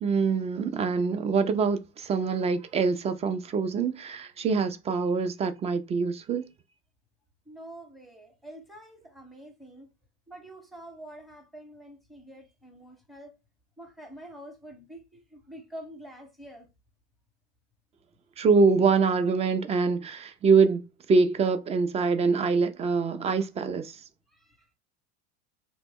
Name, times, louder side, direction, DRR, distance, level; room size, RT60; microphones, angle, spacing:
voice 1, 0.0-6.4 18.4-20.8 21.1-23.9, right 4 dB, 20° right, 0.3 m, -24 dB
voice 2, 7.5-9.9 10.3-13.3 13.8-16.7 24.3-24.7, right 1 dB, ahead, 0.8 m, -46 dB
2.9 x 2.0 x 3.4 m
supercardioid pair, 105°, 34 cm